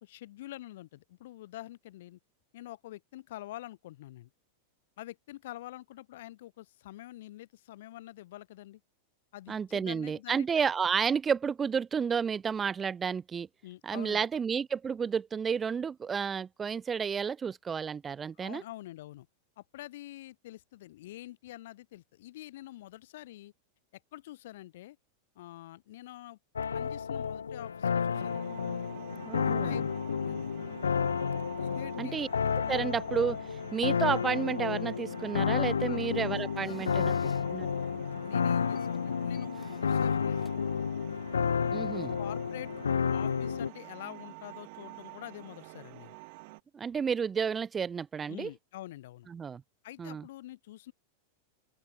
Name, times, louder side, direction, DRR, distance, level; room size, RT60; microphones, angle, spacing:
voice 1, 0.0-2.2 2.5-4.3 5.0-8.8 9.3-10.6 13.6-14.3 18.4-19.3 19.6-23.5 24.1-25.0 25.4-26.4 26.7-28.5 29.4-29.8 30.2-30.6 31.6-32.1 35.8-36.1 36.6-37.5 38.0-40.6 41.9-42.7 43.0-46.2 48.3-49.3 49.8-50.9, left 15 dB, 55° left, 2.3 m, -46 dB
voice 2, 9.5-13.5 13.8-18.6 29.2-29.8 32.0-32.3 32.5-37.1 37.5-37.7 41.7-42.2 46.7-48.5 49.3-49.6 50.0-50.3, right 6 dB, 20° right, 0.5 m, -31 dB
sound 1, 26.6-43.7, left 6 dB, 70° left, 0.6 m, -31 dB
sound 2, 28.1-46.6, right 28 dB, 45° right, 4.5 m, -49 dB
sound 3, 36.1-41.4, left 4 dB, 10° left, 4.5 m, -63 dB
open air
figure-of-eight pair, 90°, 0 cm